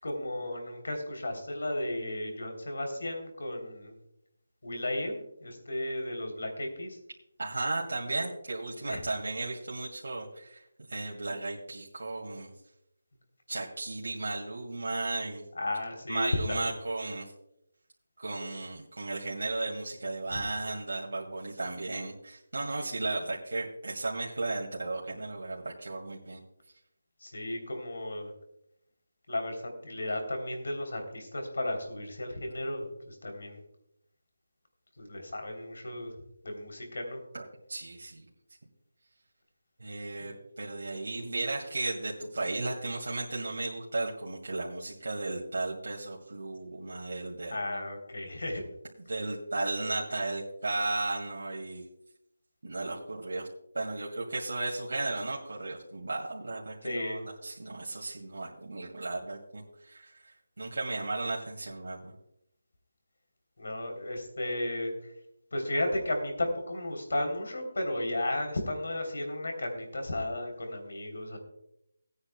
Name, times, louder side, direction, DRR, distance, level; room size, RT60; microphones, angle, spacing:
voice 1, 0.0-4.0 4.6-7.0 8.8-9.0 15.5-16.8 20.3-20.4 27.2-28.3 29.3-33.6 35.0-36.1 36.4-37.2 40.2-40.3 47.2-47.3 47.5-48.6 56.8-57.2 60.9-61.0 63.6-65.1 65.5-71.4, left 1 dB, 70° left, 3 dB, 3.2 m, -34 dB
voice 2, 7.4-10.6 10.9-12.5 13.5-15.4 16.1-17.3 18.2-26.4 37.3-38.3 39.8-47.6 49.1-51.8 52.6-53.5 53.7-62.1, right 2 dB, 75° right, -3 dB, 2.0 m, -35 dB
18.5 x 9.6 x 2.2 m, 0.80 s
figure-of-eight pair, 180°, 0 cm